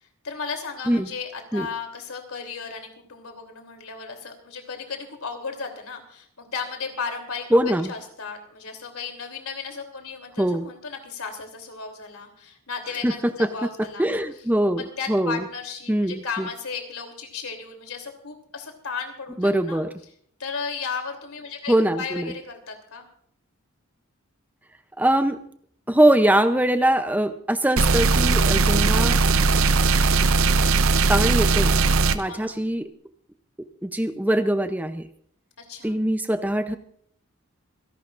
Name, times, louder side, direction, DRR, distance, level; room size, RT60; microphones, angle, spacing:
voice 1, 0.2-7.6 7.9-14.1 14.8-19.8 20.4-23.1 32.2-32.6 35.6-35.9, left 5 dB, 80° left, 4 dB, 3.2 m, -35 dB
voice 2, 7.5-7.9 10.4-10.7 13.0-13.1 13.4-13.5 14.0-15.4 15.9-16.5 19.4-19.9 21.7-22.3 25.0-25.5 25.9-29.2 31.1-31.7 32.1-32.9 33.8-35.1 35.8-36.8, right 1 dB, 10° right, 9 dB, 0.6 m, -22 dB
sound 1, 27.8-32.2, right 3 dB, 70° right, 0.7 m, -19 dB
27.0 x 11.5 x 2.5 m, 0.63 s
head